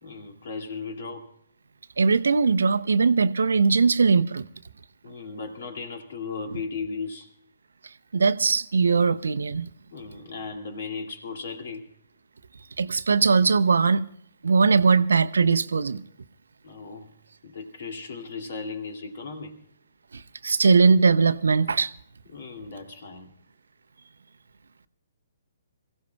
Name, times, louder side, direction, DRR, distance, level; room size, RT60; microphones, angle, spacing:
voice 1, 0.0-1.3 5.0-7.3 9.9-11.8 16.6-17.1 17.4-19.6 22.3-23.3, left 4 dB, 55° left, 2.4 m, -36 dB
voice 2, 2.0-4.4 8.1-9.7 12.8-14.0 14.4-16.0 20.1-21.9, right 4 dB, 70° right, 0.6 m, -20 dB
27.0 x 16.0 x 2.3 m
figure-of-eight pair, 125°, 0 cm